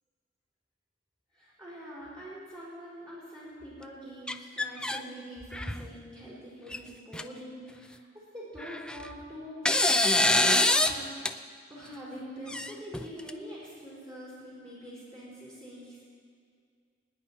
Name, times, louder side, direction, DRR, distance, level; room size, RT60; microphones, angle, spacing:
voice 1, 1.3-9.7 10.1-10.2 10.5-11.1 11.7-16.1, equal, 30° right, -7 dB, 4.4 m, -44 dB
sound 1, 4.3-5.0 5.4-5.9 6.7-6.8 7.1-7.2 8.6-9.1 9.7-10.9 11.3-11.4 12.5-13.3, left 2 dB, 5° left, 0.4 m, -25 dB
25.0 x 9.7 x 4.3 m, 2.2 s
head